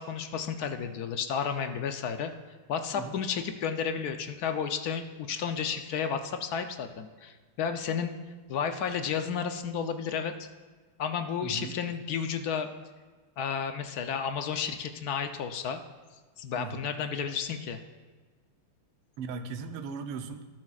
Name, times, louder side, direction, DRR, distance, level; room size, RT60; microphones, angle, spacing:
voice 1, 0.0-2.3 2.7-8.1 8.5-10.3 11.0-12.7 13.4-15.8 16.4-17.8, left 7 dB, 65° left, 7 dB, 0.9 m, -32 dB
voice 2, 11.4-11.7 16.6-16.9 19.2-20.5, right 5 dB, 85° right, 7 dB, 1.7 m, -38 dB
20.5 x 12.0 x 2.4 m, 1.4 s
omnidirectional pair, 2.4 m